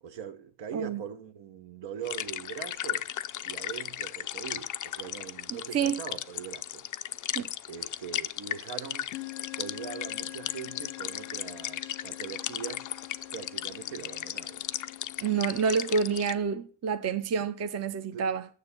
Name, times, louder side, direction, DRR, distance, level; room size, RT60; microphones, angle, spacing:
voice 1, 0.0-3.1 3.4-6.9 7.7-9.1 9.5-12.9 13.3-14.6 18.1-18.3, right 8 dB, 65° right, 1.1 m, -41 dB
sound 1, 2.0-16.3, left 12 dB, 40° left, 0.5 m, -36 dB
sound 2, 7.8-8.3 9.1-16.2, left 17 dB, 80° left, 0.7 m, -46 dB
voice 2, 15.2-18.4, right 6 dB, 35° right, 0.7 m, -28 dB
6.8 x 6.8 x 7.0 m
cardioid pair, 90°, 47 cm